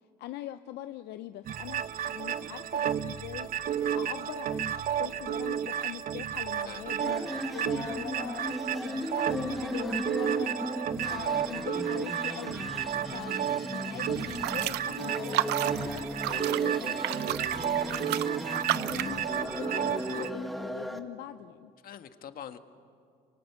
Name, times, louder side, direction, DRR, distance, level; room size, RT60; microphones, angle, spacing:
voice 1, 0.2-1.8 2.1-10.5 11.1-12.8 13.1-18.2 18.7-21.7, left 14 dB, 80° left, 10 dB, 0.7 m, -42 dB
sound 1, 1.4-20.3, right 9 dB, 60° right, 1.0 m, -32 dB
sound 2, 7.0-21.0, equal, ahead, 1.7 m, -37 dB
sound 3, 14.2-19.2, right 16 dB, 85° right, 0.6 m, -33 dB
voice 2, 21.8-22.6, left 9 dB, 60° left, 8 dB, 1.6 m, -45 dB
28.0 x 25.0 x 8.2 m, 2.3 s
cardioid pair, 110°, 17 cm